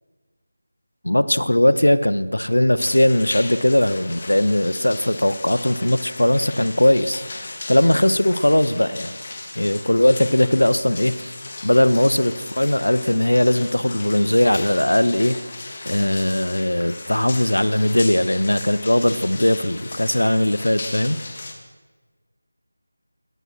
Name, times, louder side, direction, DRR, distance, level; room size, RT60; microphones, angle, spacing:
voice 1, 1.0-7.2 7.7-9.1 9.5-11.4 11.6-15.4 15.8-21.2, left 1 dB, 80° left, 14 dB, 1.4 m, -19 dB
sound 1, 2.8-21.5, left 2 dB, 40° left, 3.2 m, -36 dB
23.0 x 18.0 x 6.2 m, 1.3 s
figure-of-eight pair, 165°, 0 cm